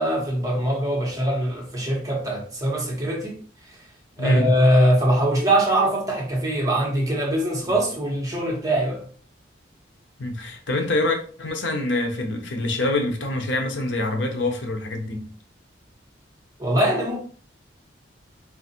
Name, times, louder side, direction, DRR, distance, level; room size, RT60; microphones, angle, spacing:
voice 1, 0.0-3.4 4.2-9.1 16.6-17.2, right 1 dB, 20° right, 1.1 m, -22 dB
voice 2, 4.2-4.5 10.2-15.3, left 2 dB, 75° left, 0.8 m, -25 dB
3.8 x 2.5 x 4.3 m
head